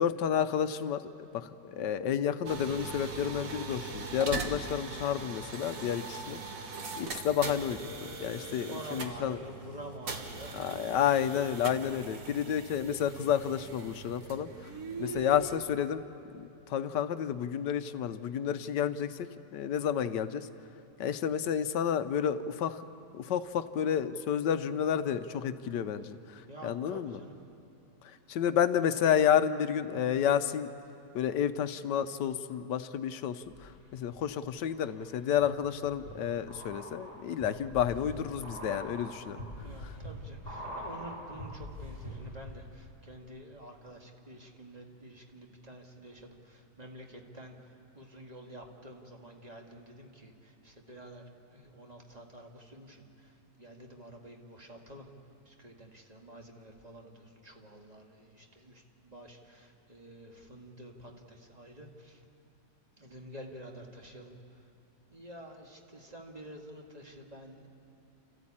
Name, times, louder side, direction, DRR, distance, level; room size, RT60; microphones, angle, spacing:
voice 1, 0.0-6.4 7.0-9.4 10.5-14.5 15.0-16.0 16.3-19.2 19.5-20.5 21.0-22.8 23.1-27.2 28.3-30.7 31.1-39.4 39.8-39.9, left 9 dB, 80° left, 11 dB, 1.4 m, -30 dB
sound 1, 2.4-15.6, right 4 dB, 55° right, 1.8 m, -41 dB
voice 2, 8.7-10.6 26.5-27.3 39.6-51.2 51.5-55.1 55.4-62.2 63.0-64.6 65.1-67.7, right 1 dB, 25° right, 1 dB, 1.9 m, -49 dB
sound 2, 33.4-34.2 34.6-42.5 42.8-42.9, equal, 10° right, 7.7 m, -44 dB
30.0 x 14.0 x 8.6 m, 2.8 s
omnidirectional pair, 1.8 m